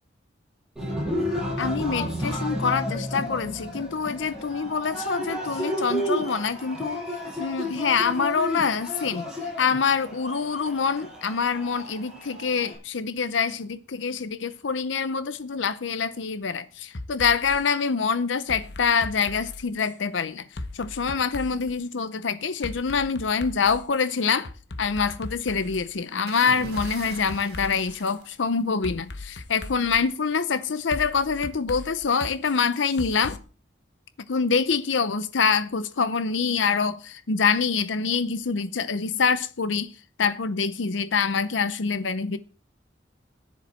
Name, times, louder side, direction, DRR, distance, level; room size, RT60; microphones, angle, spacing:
Cheering, 0.8-12.8, equal, 5° right, 7.7 m, -32 dB
voice 1, 1.6-7.0 7.4-9.2 9.6-20.4 20.7-24.5 24.8-33.4 34.3-39.9 40.2-42.4, left 5 dB, 90° left, 0.7 m, -25 dB
sound 1, 16.9-17.6 18.5-19.9 20.6-21.7 22.6-23.9 24.4-25.9 26.8-28.2 28.8-30.0 30.9-33.4, left 2 dB, 60° left, 1.0 m, -38 dB
sound 2, 26.3-29.0 30.3-30.6, right 3 dB, 60° right, 3.3 m, -44 dB
14.0 x 10.5 x 4.3 m
head